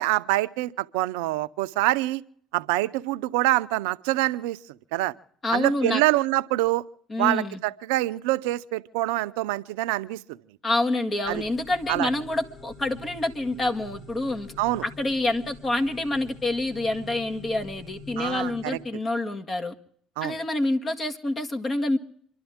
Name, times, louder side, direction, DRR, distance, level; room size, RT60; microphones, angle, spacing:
voice 1, 0.0-2.2 2.5-4.6 4.9-5.1 5.5-6.8 7.2-10.4 11.3-11.4 11.9-12.1 14.6-14.8 18.2-18.8 20.2-20.4, right 17 dB, 85° right, 13 dB, 0.6 m, -25 dB
voice 2, 5.4-6.0 7.1-7.6 10.6-14.5 14.8-19.7 20.2-22.0, left 2 dB, 35° left, 4 dB, 1.8 m, -27 dB
sound 1, 11.2-18.8, left 1 dB, 60° left, 7.3 m, -45 dB
27.5 x 11.5 x 3.6 m, 0.62 s
supercardioid pair, 75°, 0 cm